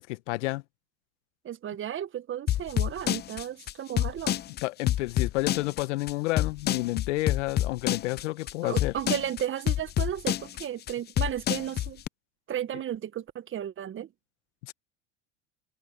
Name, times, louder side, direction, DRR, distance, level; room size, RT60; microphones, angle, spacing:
voice 1, 0.1-0.6 4.6-8.9 14.7-14.8, left 20 dB, 70° left, 1.4 m, -30 dB
voice 2, 1.4-4.4 8.6-12.0 12.5-14.1, right 10 dB, 35° right, 1.6 m, -34 dB
sound 1, 2.5-12.1, left 12 dB, 25° left, 0.6 m, -27 dB
hypercardioid pair, 90°, 37 cm